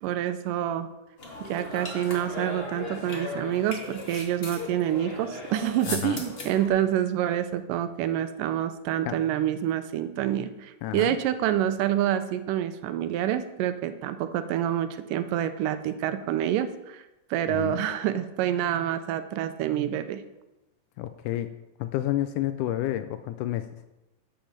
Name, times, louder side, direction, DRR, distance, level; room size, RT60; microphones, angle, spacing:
voice 1, 0.0-0.9 1.4-17.0 17.3-20.2, right 11 dB, 80° right, 11 dB, 2.2 m, -27 dB
sound 1, 1.2-6.7, left 2 dB, 30° left, 1.0 m, -37 dB
voice 2, 5.9-6.2 9.1-9.2 10.8-11.2 17.5-17.9 21.0-21.5 21.8-23.7, left 13 dB, 80° left, 11 dB, 1.9 m, -30 dB
11.5 x 5.2 x 7.3 m, 0.99 s
omnidirectional pair, 3.9 m